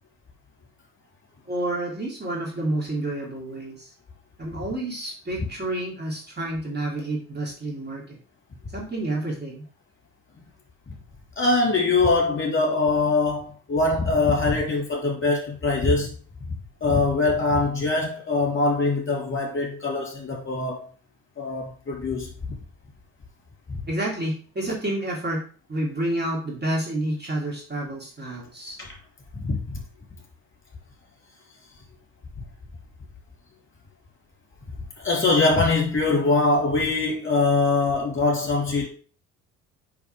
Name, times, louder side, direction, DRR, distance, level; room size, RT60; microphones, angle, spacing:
voice 1, 1.5-3.9 4.4-8.2 8.7-9.6 23.9-25.4 25.7-28.8, right 1 dB, 25° right, 2.7 m, -29 dB
voice 2, 11.4-16.1 16.8-20.9 21.4-22.3 23.7-23.8 28.8-28.9 29.3-29.6 35.0-38.9, left 3 dB, 30° left, 3.4 m, -23 dB
7.0 x 5.9 x 3.4 m
figure-of-eight pair, 55°, 42 cm